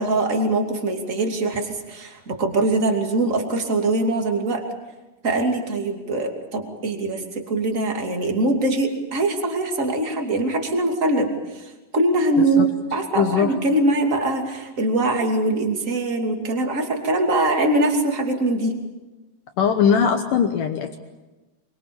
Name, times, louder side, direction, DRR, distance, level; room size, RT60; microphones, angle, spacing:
voice 1, 0.0-4.6 5.2-11.6 11.9-18.8, right 2 dB, 25° right, 3 dB, 2.0 m, -22 dB
voice 2, 12.4-12.7 13.2-13.5 19.6-21.0, left 7 dB, 75° left, 6 dB, 1.9 m, -20 dB
25.0 x 24.0 x 7.1 m, 1.1 s
omnidirectional pair, 5.4 m